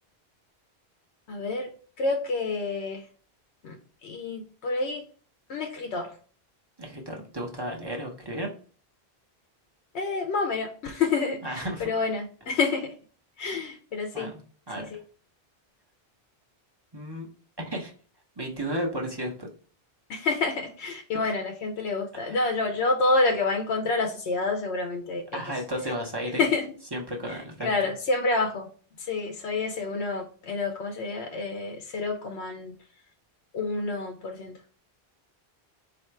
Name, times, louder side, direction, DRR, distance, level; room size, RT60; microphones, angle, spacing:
voice 1, 1.3-1.7 2.0-3.0 3.6-5.0 5.5-6.1 9.9-12.9 13.4-14.3 14.7-15.0 20.1-25.4 26.4-26.7 27.3-28.7 29.0-32.7 33.5-34.5, left 3 dB, 90° left, 4 dB, 0.9 m, -28 dB
voice 2, 6.8-8.5 11.4-11.8 14.1-14.4 14.7-14.9 16.9-17.3 17.6-17.9 18.4-19.5 21.2-21.3 22.2-22.5 25.3-26.4 26.9-27.7, equal, 25° right, 1 dB, 0.9 m, -33 dB
4.2 x 2.8 x 4.5 m, 0.42 s
omnidirectional pair, 1.1 m